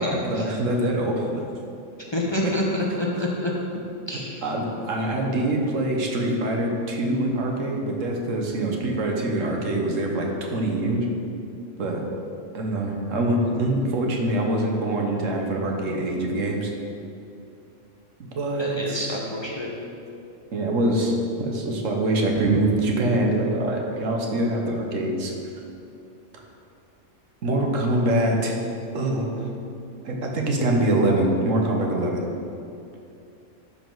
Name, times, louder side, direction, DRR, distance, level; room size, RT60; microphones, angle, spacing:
voice 1, 0.0-1.4 2.4-2.5 2.9-3.3 4.4-11.1 11.8-12.0 12.5-16.7 18.3-19.2 20.5-25.3 27.4-28.5 28.9-29.4 30.0-32.2, right 1 dB, 85° right, 1 dB, 1.4 m, -24 dB
voice 2, 2.1-3.5 4.1-4.4 18.6-19.7, left 1 dB, 25° left, -3 dB, 0.7 m, -27 dB
12.0 x 4.9 x 3.9 m, 2.7 s
omnidirectional pair, 1.3 m